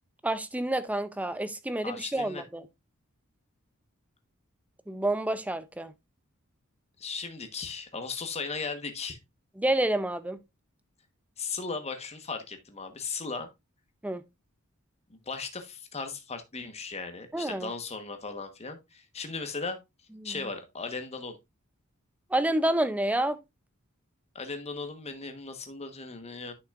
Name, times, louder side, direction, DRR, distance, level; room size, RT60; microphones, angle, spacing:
voice 1, 0.2-2.7 4.9-5.9 9.6-10.4 14.0-14.2 17.3-17.7 20.2-20.5 22.3-23.4, right 1 dB, 5° right, 0.5 m, -29 dB
voice 2, 1.8-2.4 7.0-9.2 11.4-13.5 15.3-19.8 20.2-21.4 24.3-26.5, left 4 dB, 30° left, 1.2 m, -37 dB
10.5 x 5.9 x 2.4 m
head